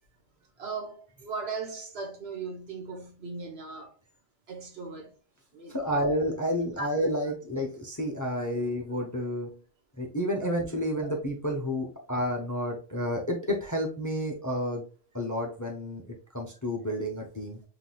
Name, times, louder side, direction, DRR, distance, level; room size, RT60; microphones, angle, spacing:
voice 1, 0.6-4.0 4.5-5.1 5.5-6.1 6.8-7.1, right 4 dB, 60° right, 1.2 m, -38 dB
voice 2, 5.7-9.6 10.0-14.8 15.1-17.6, equal, 20° left, 0.7 m, -30 dB
5.9 x 3.3 x 2.2 m
omnidirectional pair, 1.2 m